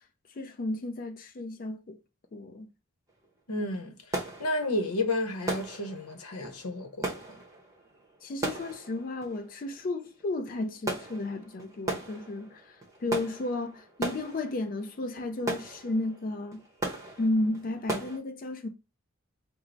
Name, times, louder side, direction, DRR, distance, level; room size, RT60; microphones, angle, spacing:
voice 1, 0.4-2.0 2.3-2.7 8.2-16.6 17.2-18.7, left 2 dB, 40° left, 0.3 m, -33 dB
sound 1, 3.1-3.3 3.6-18.2, right 2 dB, 15° right, 0.8 m, -38 dB
voice 2, 3.5-7.2, left 2 dB, 85° left, 0.8 m, -32 dB
4.5 x 2.0 x 3.9 m
head